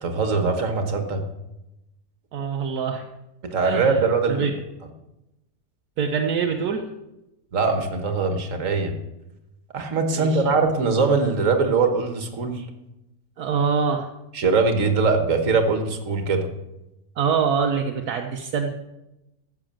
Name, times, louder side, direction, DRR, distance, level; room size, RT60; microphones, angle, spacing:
voice 1, 0.0-1.2 3.4-4.5 7.5-8.9 9.7-12.7 14.3-16.5, right 4 dB, 55° right, 6 dB, 1.8 m, -22 dB
voice 2, 2.3-3.0 3.6-4.0 4.3-4.6 6.0-6.8 10.1-10.6 13.4-14.1 17.2-18.7, right 6 dB, 70° right, 3 dB, 1.4 m, -24 dB
14.0 x 7.0 x 7.5 m, 0.93 s
omnidirectional pair, 1.7 m